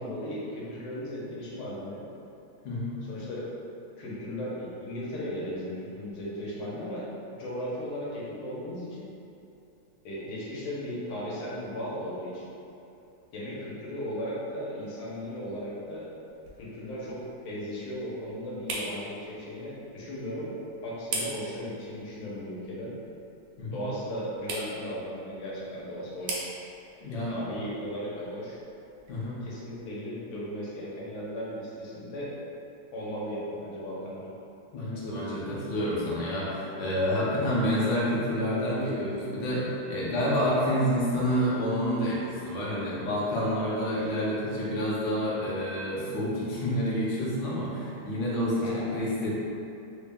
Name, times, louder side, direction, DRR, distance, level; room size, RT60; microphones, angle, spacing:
voice 1, 0.0-2.0 3.1-3.5 4.0-7.1 7.4-9.1 10.0-12.5 13.3-16.1 16.6-20.5 20.8-23.0 23.7-26.4 27.0-28.6 29.4-32.4 32.9-34.3 48.6-49.0, equal, 85° left, -7 dB, 1.6 m, -36 dB
voice 2, 2.6-3.0 23.6-23.8 27.0-27.3 29.1-29.4 34.7-49.3, equal, 65° left, -7 dB, 1.2 m, -28 dB
sound 1, 15.1-29.9, right 2 dB, 70° right, 1.2 m, -43 dB
3.8 x 2.2 x 3.4 m, 2.7 s
omnidirectional pair, 2.3 m